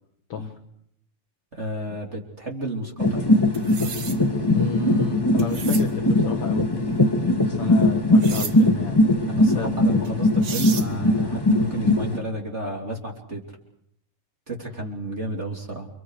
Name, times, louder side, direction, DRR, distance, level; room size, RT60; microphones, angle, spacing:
voice 1, 1.5-3.3 7.5-7.8 9.3-13.4 14.5-15.9, right 1 dB, 20° right, 0 dB, 3.0 m, -32 dB
sound 1, 3.0-12.2, left 1 dB, 10° left, 1.6 m, -20 dB
sound 2, 3.5-4.2 5.4-5.9 8.2-8.5 10.0-10.1 10.4-10.9, right 6 dB, 50° right, 1.5 m, -33 dB
voice 2, 4.3-6.7 7.5-9.0 9.5-9.8, left 5 dB, 55° left, 3 dB, 1.7 m, -31 dB
29.5 x 26.5 x 4.9 m, 0.73 s
omnidirectional pair, 3.9 m